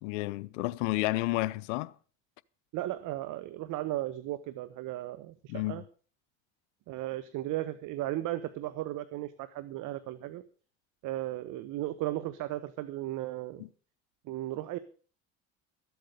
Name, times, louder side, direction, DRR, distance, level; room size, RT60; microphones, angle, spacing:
voice 1, 0.0-1.9 5.5-5.8 13.6-13.7, left 19 dB, 85° left, 0.7 m, -31 dB
voice 2, 2.7-5.8 6.9-10.4 11.0-13.6 14.2-14.8, right 15 dB, 60° right, 1.0 m, -35 dB
13.5 x 8.1 x 6.7 m
supercardioid pair, 95°, 35 cm